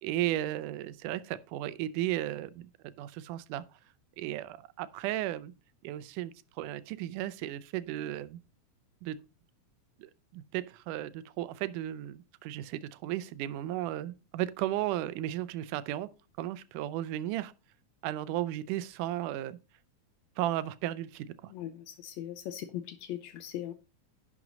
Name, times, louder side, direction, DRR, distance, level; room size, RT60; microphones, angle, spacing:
voice 1, 0.0-3.6 4.2-5.5 5.8-8.4 9.0-9.2 10.0-16.1 16.4-17.5 18.0-19.6 20.4-21.5, right 13 dB, 85° right, 2.2 m, -35 dB
voice 2, 21.5-23.7, left 11 dB, 80° left, 1.8 m, -39 dB
11.0 x 6.1 x 4.0 m
omnidirectional pair, 3.6 m